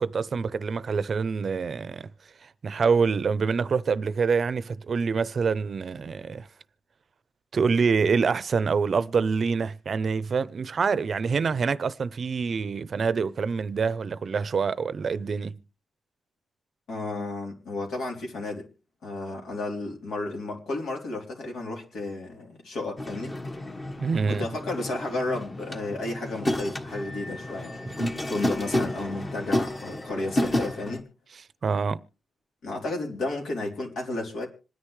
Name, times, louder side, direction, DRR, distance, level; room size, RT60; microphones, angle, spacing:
voice 1, 0.0-2.1 2.6-6.5 7.5-15.6 24.0-24.5 31.6-32.0, right 5 dB, 45° right, 0.6 m, -26 dB
voice 2, 16.9-18.7 19.0-23.4 24.3-27.7 28.3-31.1 32.6-34.5, left 2 dB, 80° left, 3.5 m, -32 dB
sound 1, 23.0-31.0, left 1 dB, 25° left, 1.4 m, -31 dB
26.5 x 9.9 x 3.2 m
cardioid pair, 115°, 0 cm